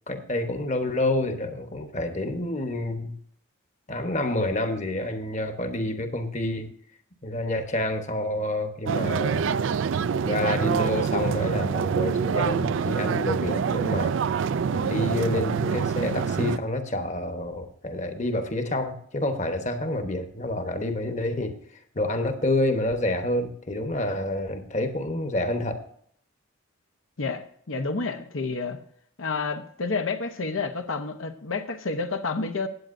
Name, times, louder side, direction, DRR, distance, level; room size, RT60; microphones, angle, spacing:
voice 1, 0.1-3.1 3.9-6.7 7.2-9.7 10.2-14.1 14.7-21.6 21.9-25.8, left 1 dB, 35° left, 6 dB, 1.1 m, -28 dB
sound 1, 8.9-16.6, right 6 dB, 65° right, 0.3 m, -26 dB
voice 2, 27.2-28.8 29.2-32.7, left 4 dB, 80° left, 6 dB, 0.9 m, -29 dB
16.0 x 9.1 x 2.6 m, 0.64 s
head